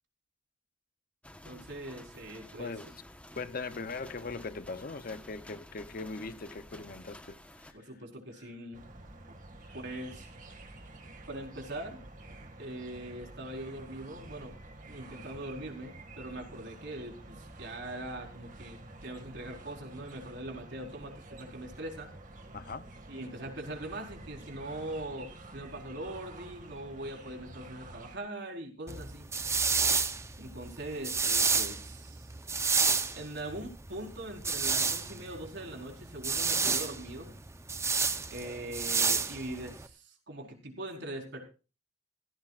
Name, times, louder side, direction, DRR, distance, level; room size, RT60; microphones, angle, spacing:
sound 1, 1.2-7.7, left 1 dB, 5° left, 1.1 m, -51 dB
voice 1, 1.4-2.7 7.7-8.8 9.3-9.4 9.7-10.3 11.3-12.0 12.6-14.5 14.9-22.1 23.1-29.2 30.4-32.3 33.1-37.3 38.3-41.4, right 1 dB, 60° right, 4.5 m, -41 dB
voice 2, 2.6-2.9 3.4-7.9 8.4-8.5 9.7-9.8 22.5-22.9, left 3 dB, 45° left, 0.7 m, -40 dB
sound 2, 8.7-28.2, right 2 dB, 40° right, 2.0 m, -49 dB
sound 3, 28.9-39.8, right 5 dB, 15° right, 0.7 m, -30 dB
16.5 x 16.5 x 2.5 m
head